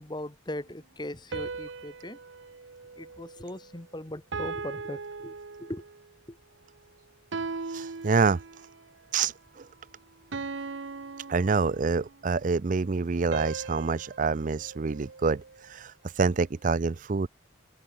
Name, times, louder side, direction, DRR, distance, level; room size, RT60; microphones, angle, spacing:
voice 1, 0.0-2.2 3.0-5.8, left 1 dB, 20° left, 1.6 m, -39 dB
sound 1, 1.3-3.8 4.3-6.1 7.3-8.8 10.3-12.2 13.3-15.7, right 4 dB, 70° right, 0.8 m, -39 dB
voice 2, 7.7-8.4 9.1-9.7 11.3-17.3, right 4 dB, 40° right, 0.5 m, -27 dB
head